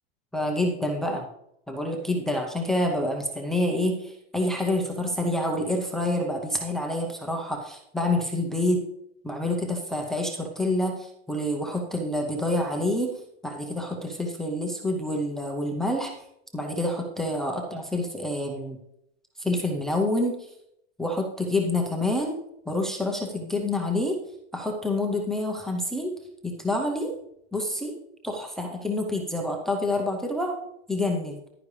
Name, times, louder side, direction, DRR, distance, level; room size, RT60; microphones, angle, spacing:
voice 1, 0.3-1.3 1.7-8.8 9.2-13.2 13.4-16.1 16.5-18.8 19.4-20.5 21.0-22.4 22.7-24.2 24.5-26.1 26.4-27.1 27.5-28.0 28.2-30.6 30.9-31.4, left 1 dB, ahead, 1 dB, 0.6 m, -27 dB
11.0 x 10.0 x 3.2 m, 0.76 s
supercardioid pair, 175°, 31 cm